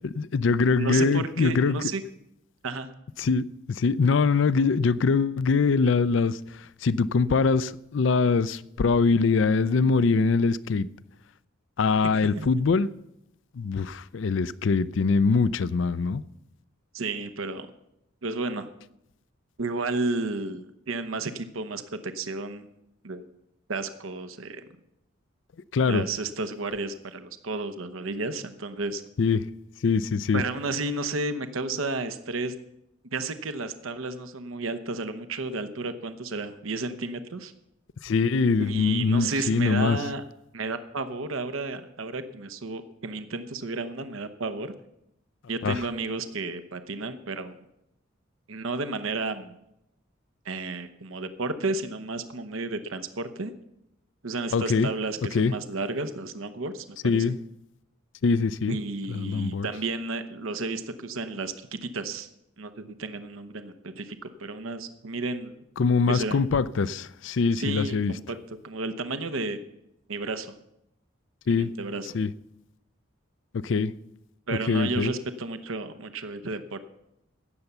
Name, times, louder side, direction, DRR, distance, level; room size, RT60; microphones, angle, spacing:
voice 1, 0.2-1.8 3.2-10.9 11.8-12.9 13.6-16.2 25.7-26.0 29.2-29.4 29.8-30.4 38.0-40.0 45.6-45.8 54.5-54.9 55.3-55.5 57.0-57.4 58.2-58.8 59.1-59.7 65.8-68.1 71.5-71.7 72.1-72.3 73.6-73.9 74.7-75.1, left 4 dB, 65° left, 0.4 m, -23 dB
voice 2, 0.8-2.0 2.6-2.9 12.0-12.5 16.9-17.7 18.2-18.7 19.6-22.7 23.0-23.3 23.7-24.6 25.9-29.0 30.3-32.6 33.1-37.5 38.6-40.2 40.5-44.7 45.5-47.6 48.5-49.6 50.4-53.5 54.2-57.3 58.7-62.3 62.6-65.5 66.1-66.4 67.6-69.6 70.1-70.5 71.5-72.1 74.5-76.8, right 3 dB, 85° right, 0.9 m, -32 dB
17.0 x 7.1 x 6.7 m
head